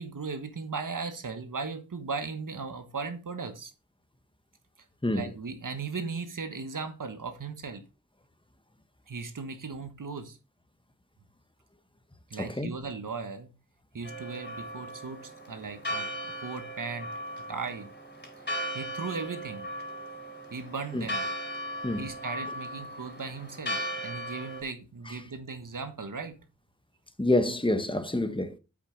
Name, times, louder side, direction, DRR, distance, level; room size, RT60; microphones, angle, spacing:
voice 1, 0.0-3.7 5.1-7.8 9.1-10.4 12.3-13.5 13.9-17.1 17.5-17.9 18.7-19.7 20.5-21.3 22.0-26.4, right 4 dB, 85° right, 1.4 m, -37 dB
voice 2, 12.4-12.7 20.9-21.0 21.8-22.0 27.2-28.5, left 1 dB, 15° left, 1.2 m, -27 dB
Church bell, 14.0-24.6, equal, 35° left, 5.0 m, -37 dB
8.6 x 6.0 x 4.5 m
wide cardioid pair, 50°, 31 cm